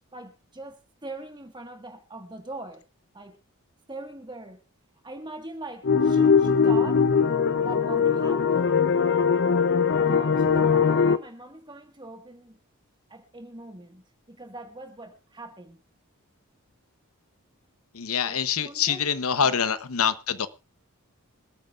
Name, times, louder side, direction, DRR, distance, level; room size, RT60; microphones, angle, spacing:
voice 1, 0.1-2.8 3.1-3.4 3.9-4.6 5.0-7.1 7.6-8.5 10.0-12.6 13.1-15.8 18.2-19.1, right 2 dB, 20° right, 1.6 m, -41 dB
sound 1, 5.8-11.2, left 6 dB, 50° left, 0.6 m, -21 dB
voice 2, 17.9-20.5, left 7 dB, 75° left, 0.9 m, -25 dB
26.5 x 9.2 x 2.5 m
head